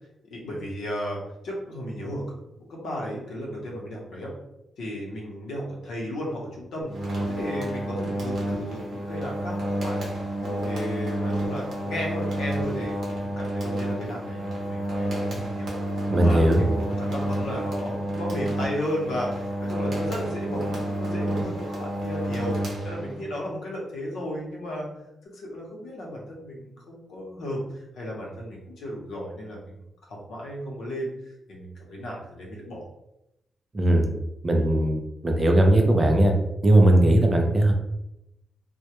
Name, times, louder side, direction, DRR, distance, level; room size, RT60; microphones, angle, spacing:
voice 1, 0.2-2.2 2.7-4.3 4.8-10.1 10.6-13.0 13.2-24.9 25.3-29.7 30.1-32.9, equal, 75° left, -2 dB, 0.7 m, -34 dB
sound 1, 6.9-23.4, right 1 dB, 55° right, 0.7 m, -30 dB
voice 2, 16.1-16.7 33.7-34.2 34.4-36.3 36.6-37.7, right 1 dB, 20° right, 2 dB, 0.3 m, -19 dB
2.2 x 2.0 x 2.8 m, 0.86 s
wide cardioid pair, 170°, 0 cm